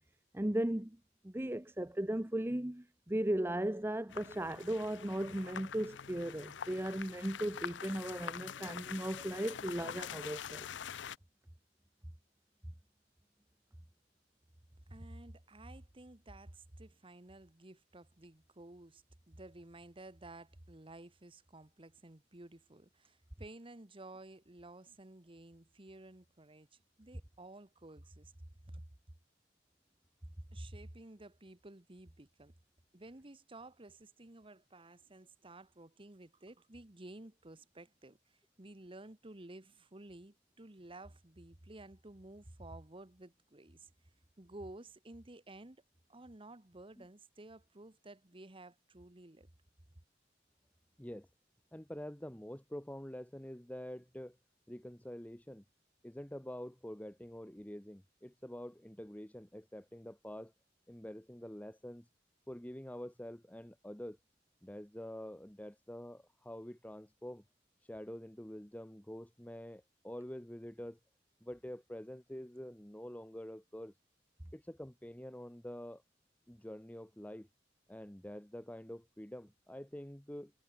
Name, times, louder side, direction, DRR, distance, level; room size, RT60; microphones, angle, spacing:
voice 1, 0.3-1.0 1.2-10.7, right 1 dB, 15° right, 0.9 m, -36 dB
sound 1, 4.1-11.2, left 8 dB, 75° left, 0.6 m, -45 dB
voice 2, 14.9-26.7 27.0-28.3 28.6-28.8 30.5-32.5 32.9-43.9 44.4-45.8 46.1-49.5, right 2 dB, 30° right, 1.4 m, -53 dB
voice 3, 51.7-54.4 54.7-55.6 56.0-60.5 60.9-62.0 62.5-64.2 64.6-67.4 67.9-71.0 71.4-73.9 74.5-76.0 76.5-77.5 77.9-80.5, equal, 10° left, 1.2 m, -47 dB
head